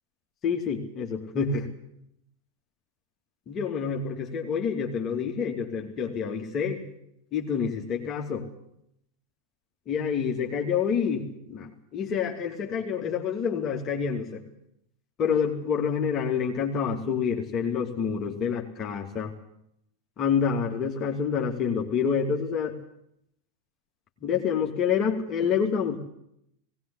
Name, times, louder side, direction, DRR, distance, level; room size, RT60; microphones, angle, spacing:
voice 1, 0.4-1.7 3.5-6.8 7.3-8.4 9.9-14.4 15.2-19.3 20.2-22.7 24.2-26.0, left 6 dB, 30° left, 1 dB, 2.6 m, -27 dB
19.5 x 18.5 x 8.5 m, 0.75 s
figure-of-eight pair, 90°, 0 cm